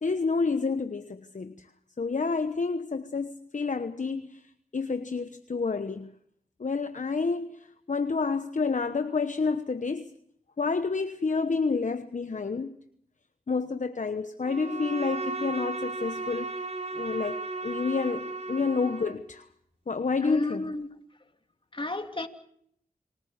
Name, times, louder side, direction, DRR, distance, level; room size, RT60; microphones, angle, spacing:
voice 1, 0.0-1.7 2.0-4.4 4.7-6.1 6.6-10.1 10.6-12.8 13.5-16.6 16.9-19.5 19.9-20.8, left 4 dB, 55° left, 1.1 m, -29 dB
Bowed string instrument, 14.4-19.2, right 3 dB, 45° right, 7.1 m, -35 dB
voice 2, 20.2-20.9 21.7-22.3, left 2 dB, 35° left, 2.8 m, -31 dB
28.5 x 19.5 x 6.6 m
cardioid pair, 40°, 15 cm